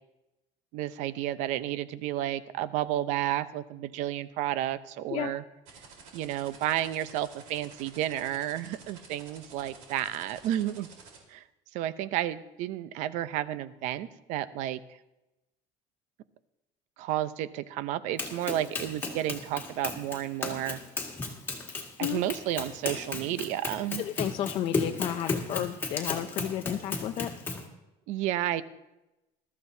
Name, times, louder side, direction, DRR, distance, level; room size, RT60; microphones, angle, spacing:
voice 1, 0.7-5.4 6.1-10.9 11.3-11.4 11.7-14.8 17.0-20.8 22.0-24.0 28.1-28.6, right 12 dB, 60° right, 14 dB, 0.7 m, -31 dB
sound 1, 5.6-11.2, right 5 dB, 75° right, 4.0 m, -50 dB
Run, 18.2-27.7, left 3 dB, 15° left, 1.7 m, -35 dB
voice 2, 24.0-27.3, left 11 dB, 40° left, 6 dB, 0.5 m, -32 dB
21.0 x 13.5 x 2.8 m, 0.96 s
cardioid pair, 180°, 14 cm